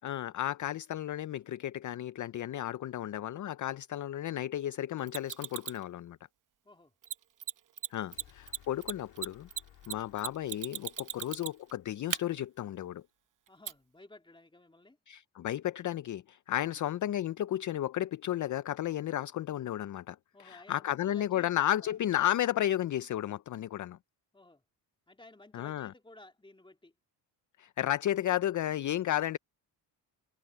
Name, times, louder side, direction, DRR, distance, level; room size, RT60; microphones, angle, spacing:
voice 1, 0.0-6.2 7.9-9.5 9.9-13.0 15.1-20.2 20.4-24.0 25.5-25.9 27.6-29.4, left 12 dB, 45° left, 0.5 m, -33 dB
Mechanisms, 5.1-5.8 7.0-7.1 7.4-7.5 7.8-7.9 8.1-11.7 12.1-12.2 13.7-13.8, right 10 dB, 45° right, 0.9 m, -36 dB
sound 1, 8.1-12.4, left 12 dB, 80° left, 3.8 m, -61 dB
voice 2, 13.5-15.0 20.3-22.0 24.3-24.6 25.1-26.9, left 2 dB, 10° left, 2.6 m, -56 dB
cardioid pair, 85°, 44 cm